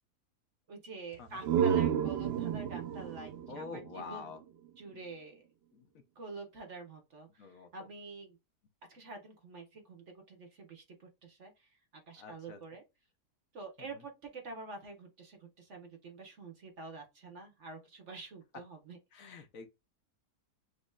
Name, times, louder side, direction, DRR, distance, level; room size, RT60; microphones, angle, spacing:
voice 1, 0.7-4.3 4.8-5.4 6.1-7.5 7.7-8.4 8.9-11.7 12.1-12.8 13.5-19.0, right 3 dB, 50° right, 1.5 m, -47 dB
sound 1, 1.1-4.8, right 8 dB, 70° right, 0.6 m, -32 dB
voice 2, 3.5-4.4 4.9-5.0 5.7-5.9 7.4-7.9 12.2-12.6 13.8-14.0 19.1-19.7, left 5 dB, 65° left, 1.1 m, -47 dB
6.5 x 3.0 x 2.3 m
omnidirectional pair, 1.7 m